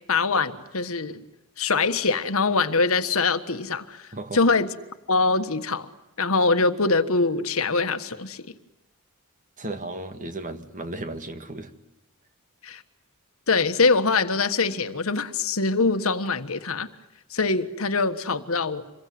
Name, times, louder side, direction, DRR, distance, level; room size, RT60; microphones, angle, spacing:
voice 1, 0.1-1.2 1.6-4.1 4.3-4.7 5.1-5.9 6.2-8.4 12.6-12.8 13.5-16.9 17.3-18.8, left 4 dB, 75° left, 1.5 m, -23 dB
voice 2, 4.1-4.5 9.6-11.7, right 2 dB, 35° right, 2.0 m, -35 dB
27.0 x 22.5 x 9.5 m
head